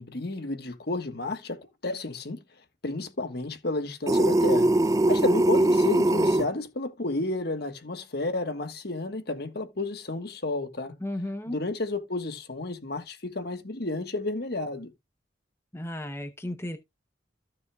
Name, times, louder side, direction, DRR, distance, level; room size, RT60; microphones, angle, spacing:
voice 1, 0.0-2.4 2.8-4.7 5.1-11.0 11.5-14.9, left 2 dB, 60° left, 1.4 m, -31 dB
sound 1, 4.1-6.5, right 1 dB, 20° right, 0.4 m, -21 dB
voice 2, 11.0-11.6 15.7-16.8, left 1 dB, 15° left, 0.8 m, -34 dB
15.5 x 6.8 x 2.4 m
head